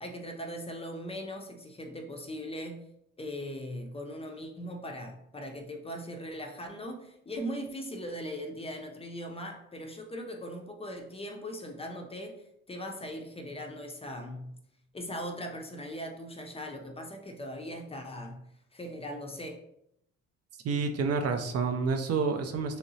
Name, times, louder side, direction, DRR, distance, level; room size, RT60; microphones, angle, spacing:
voice 1, 0.0-2.8 3.2-14.5 14.9-18.4 18.7-19.6, equal, 20° left, 2 dB, 0.4 m, -39 dB
voice 2, 20.6-22.8, right 4 dB, 55° right, 5 dB, 0.4 m, -29 dB
3.1 x 2.7 x 2.7 m, 0.77 s
cardioid pair, 90°, 30 cm